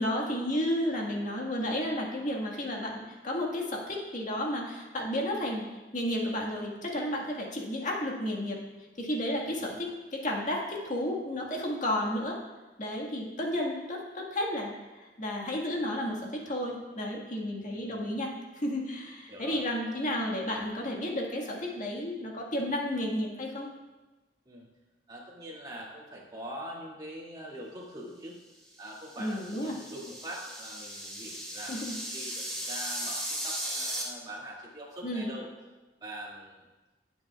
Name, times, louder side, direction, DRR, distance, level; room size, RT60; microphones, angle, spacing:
voice 1, 0.0-5.7 5.9-8.6 9.0-12.4 12.8-23.7 29.2-29.8 31.5-32.0 35.0-35.3, left 1 dB, 45° left, -1 dB, 1.7 m, -32 dB
voice 2, 9.4-9.8 17.7-18.1 19.3-19.6 24.5-24.7 25.1-28.4 28.8-35.5 36.0-36.7, right 1 dB, 25° right, -5 dB, 2.4 m, -43 dB
sound 1, 28.9-34.0, equal, 5° left, 2.5 m, -37 dB
19.0 x 7.9 x 2.4 m, 1.2 s
head